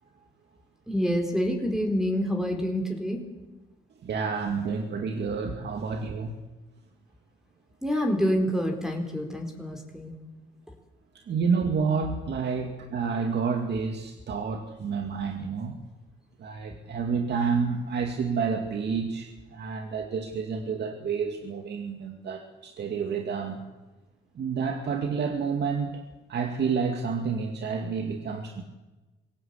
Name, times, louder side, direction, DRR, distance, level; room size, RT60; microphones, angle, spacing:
voice 1, 0.9-3.2 7.8-10.1, equal, ahead, 3 dB, 4.3 m, -27 dB
voice 2, 4.0-6.3 11.3-15.8 16.4-23.6 24.4-26.0 26.3-28.6, right 5 dB, 60° right, 4 dB, 2.4 m, -29 dB
23.0 x 17.0 x 8.4 m, 1.1 s
cardioid pair, 90°, 20 cm